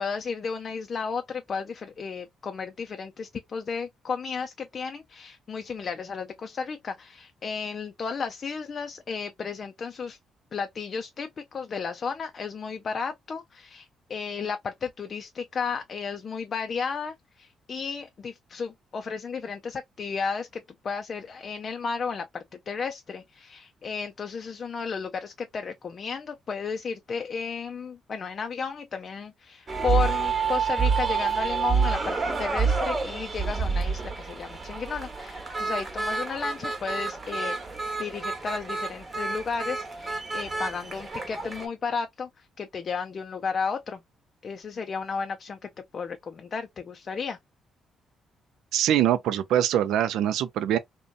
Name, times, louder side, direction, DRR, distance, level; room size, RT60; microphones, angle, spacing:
voice 1, 0.0-10.2 10.5-37.6 38.0-44.0 44.4-47.4, left 5 dB, 45° left, 0.4 m, -33 dB
sound 1, 29.7-41.7, right 5 dB, 30° right, 0.9 m, -28 dB
voice 2, 48.7-50.8, right 11 dB, 85° right, 0.3 m, -23 dB
2.6 x 2.2 x 2.4 m
cardioid pair, 90°, 0 cm